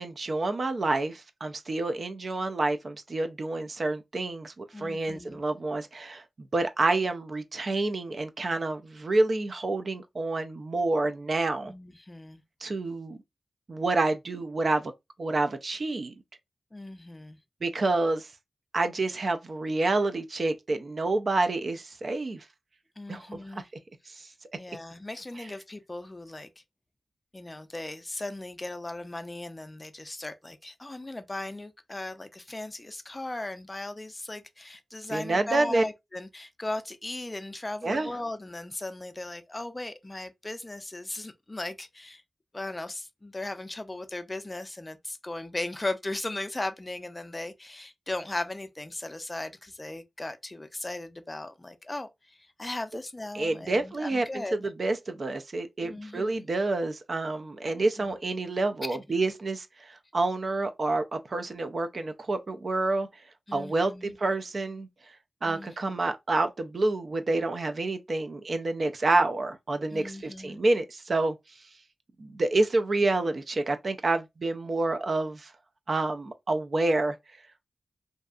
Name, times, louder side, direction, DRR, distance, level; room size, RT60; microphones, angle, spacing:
voice 1, 0.0-11.7 12.6-13.2 13.7-14.9 15.2-16.1 17.6-18.3 18.7-22.4 23.1-23.3 23.5-23.6 24.2-24.3 35.1-35.8 37.8-38.1 53.3-63.2 63.5-65.1 65.4-71.4 72.2-75.5 75.9-77.2, right 2 dB, 55° right, 0.4 m, -28 dB
voice 2, 4.7-5.4 11.6-12.4 16.7-17.4 23.0-23.7 24.1-26.6 27.3-42.2 42.5-54.7 55.8-56.5 57.8-58.2 58.8-59.0 63.5-64.2 65.5-66.0 69.9-70.6, left 2 dB, 25° left, 0.4 m, -37 dB
2.6 x 2.4 x 2.3 m
cardioid pair, 60°, 0 cm